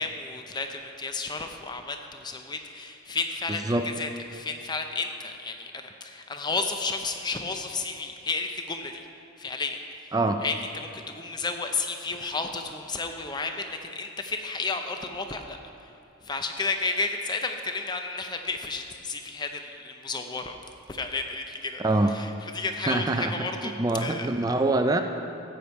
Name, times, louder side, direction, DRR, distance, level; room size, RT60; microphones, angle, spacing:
voice 1, 0.0-9.1 9.4-15.9 16.2-20.5 20.9-24.3, left 3 dB, 20° left, 5 dB, 0.6 m, -32 dB
voice 2, 10.1-10.4 21.8-22.1 22.9-23.3 23.8-25.0, right 2 dB, 15° right, 6 dB, 0.3 m, -24 dB
13.5 x 8.6 x 4.6 m, 2.7 s
head